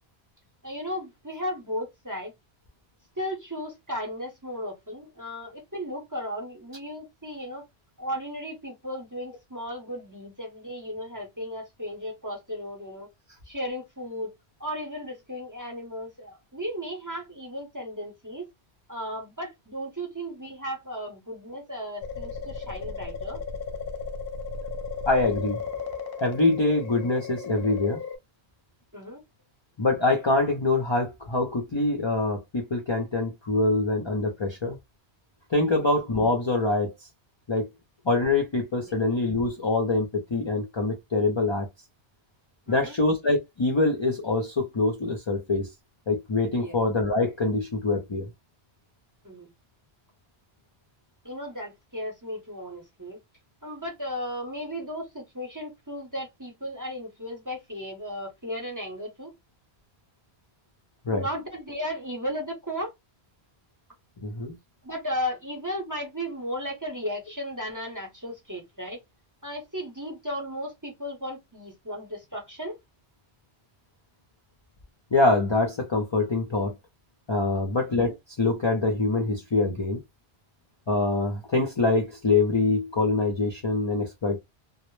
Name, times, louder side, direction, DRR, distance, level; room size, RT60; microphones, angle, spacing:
voice 1, 0.6-2.3 3.2-7.7 8.0-13.1 13.5-14.3 14.6-18.5 18.9-23.4 28.9-29.2 35.7-35.9 38.9-39.0 42.7-42.9 46.6-46.7 49.2-49.5 51.2-53.2 53.6-59.3 61.1-62.9 64.8-69.0 69.4-72.8 77.7-78.0, equal, 20° right, 0.6 m, -35 dB
sound 1, 22.0-28.2, left 5 dB, 65° left, 0.7 m, -35 dB
voice 2, 25.1-25.6 26.2-28.0 29.8-34.8 35.5-36.9 37.5-37.7 38.0-41.7 42.7-45.7 46.1-48.3 61.1-61.3 64.2-64.5 75.1-76.7 77.3-80.0 80.9-84.4, left 2 dB, 45° left, 0.4 m, -24 dB
2.0 x 2.0 x 3.0 m
omnidirectional pair, 1.1 m